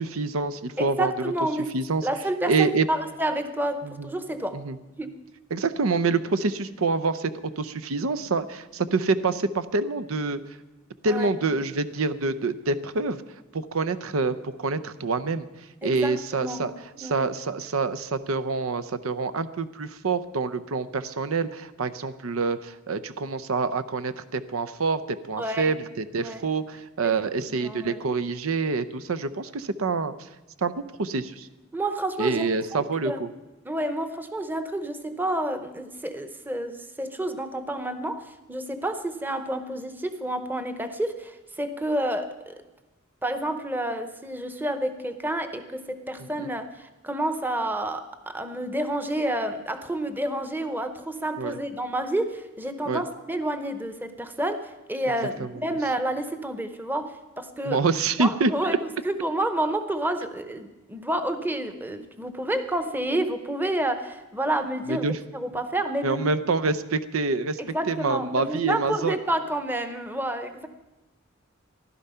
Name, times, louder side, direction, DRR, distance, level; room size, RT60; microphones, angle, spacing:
voice 1, 0.0-1.3 1.7-2.0 2.5-2.9 3.8-4.1 4.5-4.8 5.5-10.4 11.0-13.2 13.5-15.5 15.8-16.7 17.0-30.1 30.6-31.5 32.2-33.3 51.4-51.6 52.9-53.0 55.4-55.8 57.6-58.5 64.9-65.2 66.0-67.6 67.9-69.2, right 4 dB, 85° right, 12 dB, 0.6 m, -26 dB
voice 2, 0.8-1.7 2.0-4.6 5.0-5.1 11.1-11.5 15.8-17.3 25.4-25.8 26.1-26.5 27.0-27.2 27.5-28.0 31.7-33.4 33.6-42.6 43.2-57.8 58.2-58.8 59.0-65.1 65.3-66.3 67.6-70.7, right 1 dB, 10° right, 9 dB, 0.8 m, -29 dB
15.0 x 11.5 x 5.6 m, 1.0 s
head